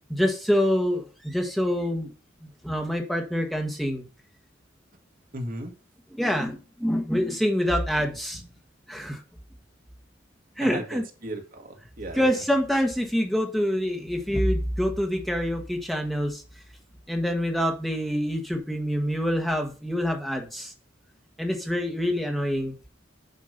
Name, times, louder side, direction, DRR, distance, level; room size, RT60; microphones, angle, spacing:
voice 1, 0.1-2.1 2.4-4.0 6.1-8.4 8.9-9.2 10.6-11.0 12.1-16.4 17.1-20.7 21.4-22.7, equal, ahead, 2 dB, 1.5 m, -26 dB
voice 2, 5.3-5.7 10.6-12.3, right 1 dB, 50° right, 4 dB, 1.9 m, -36 dB
9.8 x 5.3 x 5.2 m, 0.35 s
head